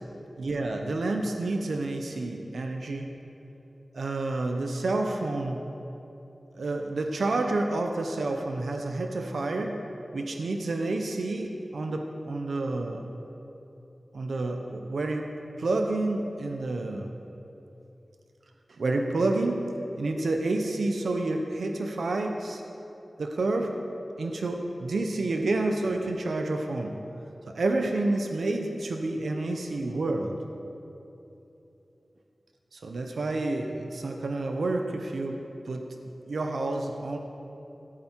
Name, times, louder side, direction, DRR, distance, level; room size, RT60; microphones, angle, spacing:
voice 1, 0.4-3.1 3.9-5.6 6.6-9.8 10.1-13.1 14.1-15.3 15.6-17.1 18.8-19.6 20.0-22.6 23.2-23.8 24.2-26.9 27.5-30.4 32.7-35.9 36.3-37.2, right 2 dB, 85° right, 3 dB, 0.8 m, -29 dB
15.5 x 8.8 x 4.5 m, 2.9 s
wide cardioid pair, 85°, 0 cm